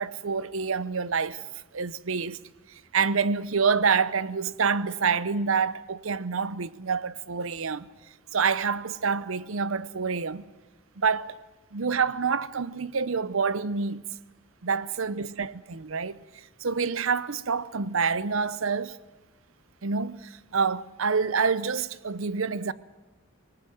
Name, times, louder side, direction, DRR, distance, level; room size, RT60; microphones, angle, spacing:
voice 1, 0.0-1.4 1.7-2.4 2.7-7.9 8.3-10.5 11.0-11.4 11.7-14.0 14.6-16.2 16.6-19.0 19.8-22.7, right 5 dB, 75° right, 0.8 m, -27 dB
19.5 x 18.5 x 9.2 m
head